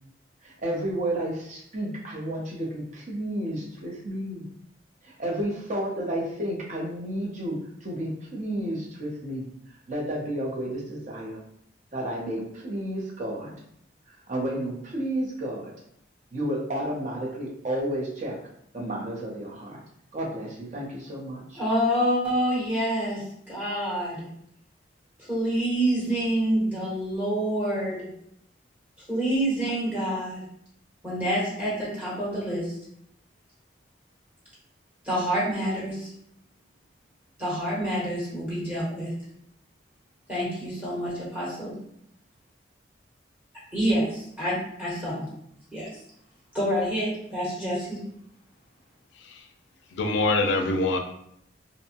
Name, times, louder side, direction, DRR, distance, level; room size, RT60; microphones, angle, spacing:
voice 1, 0.4-4.5 5.0-9.5 9.9-11.4 11.9-13.5 14.3-15.7 16.3-18.4 18.7-19.8 20.1-21.6, right 1 dB, 40° right, -3 dB, 0.7 m, -31 dB
voice 2, 21.5-24.3 25.3-28.1 29.1-30.4 31.0-32.8 35.0-36.1 37.4-39.1 40.3-41.8 43.7-45.3 45.7-45.9 46.5-48.0, equal, 10° right, -8 dB, 1.1 m, -27 dB
voice 3, 49.9-51.0, left 2 dB, 75° left, 5 dB, 0.4 m, -24 dB
2.6 x 2.2 x 2.8 m, 0.71 s
head